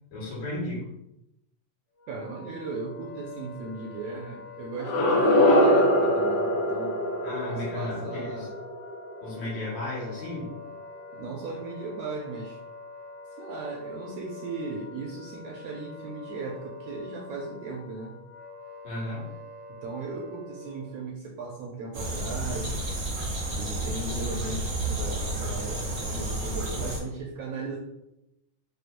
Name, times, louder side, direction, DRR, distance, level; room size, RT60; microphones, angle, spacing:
voice 1, 0.1-0.9 7.2-8.5 9.2-10.5 18.8-19.3, left 2 dB, 70° left, -7 dB, 2.9 m, -34 dB
Wind instrument woodwind instrument, 1.9-21.1, left 3 dB, 50° left, 1.2 m, -45 dB
voice 2, 2.1-7.0 7.5-8.6 11.1-12.6 13.4-18.2 19.7-22.8 23.5-27.8, right 3 dB, 75° right, -2 dB, 1.5 m, -37 dB
sound 1, 4.7-9.7, left 1 dB, 90° left, 2.2 m, -23 dB
sound 2, 21.9-27.0, right 1 dB, 55° right, 1.0 m, -31 dB
6.0 x 2.7 x 2.5 m, 0.88 s
omnidirectional pair, 3.3 m